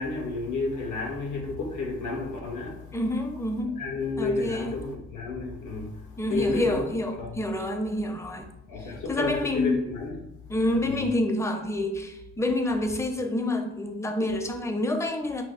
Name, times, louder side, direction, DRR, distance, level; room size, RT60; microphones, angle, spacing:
voice 1, 0.0-3.0 3.8-7.3 8.7-10.2 10.5-11.1, left 3 dB, 80° left, 1.0 m, -31 dB
voice 2, 2.9-3.8 4.2-4.7 6.2-8.5 8.8-9.8 10.5-15.4, left 1 dB, 10° left, 0.4 m, -28 dB
5.9 x 2.1 x 2.4 m
cardioid pair, 90°, 30 cm